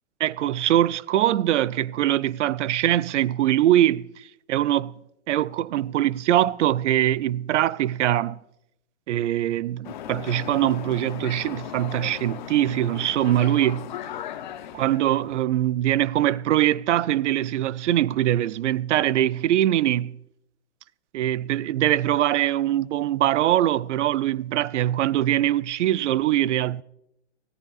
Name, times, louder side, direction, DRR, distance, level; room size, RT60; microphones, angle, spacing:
voice 1, 0.2-4.9 5.3-8.4 9.1-13.9 14.7-20.2 21.1-26.8, right 12 dB, 85° right, 0.5 m, -22 dB
sound 1, 9.8-15.4, left 10 dB, 40° left, 0.7 m, -37 dB
24.0 x 14.0 x 2.4 m
hypercardioid pair, 175°, 35 cm